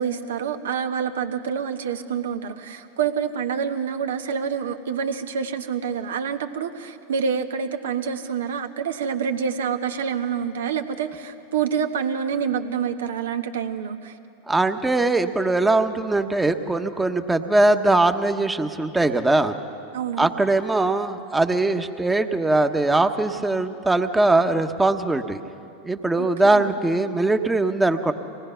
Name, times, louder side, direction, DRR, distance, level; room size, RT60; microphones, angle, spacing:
voice 1, 0.0-14.2 19.9-20.3 26.2-26.7, right 7 dB, 80° right, 6 dB, 1.2 m, -27 dB
voice 2, 14.5-19.5 20.2-25.4 25.8-28.1, right 2 dB, 10° right, 8 dB, 1.1 m, -21 dB
25.0 x 19.0 x 5.7 m, 2.6 s
hypercardioid pair, 95°, 0 cm